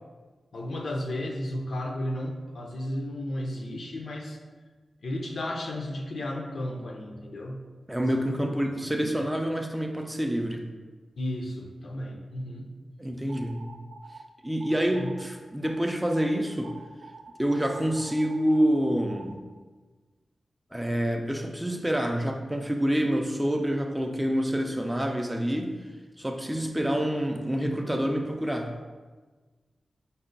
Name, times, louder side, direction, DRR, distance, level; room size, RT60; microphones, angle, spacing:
voice 1, 0.5-4.4 5.0-7.7 8.1-8.4 8.7-9.2 11.2-12.7 14.9-15.1, left 1 dB, 70° left, 1 dB, 0.5 m, -34 dB
voice 2, 7.9-10.7 13.0-13.7 14.4-16.7 17.4-19.4 20.7-25.7 26.2-28.7, equal, 10° right, 3 dB, 0.3 m, -27 dB
sound 1, 13.3-14.2 14.6-15.3 15.6-16.3 16.6-19.4, right 4 dB, 85° right, 0.4 m, -47 dB
5.3 x 2.1 x 3.8 m, 1.4 s
wide cardioid pair, 125°, 0 cm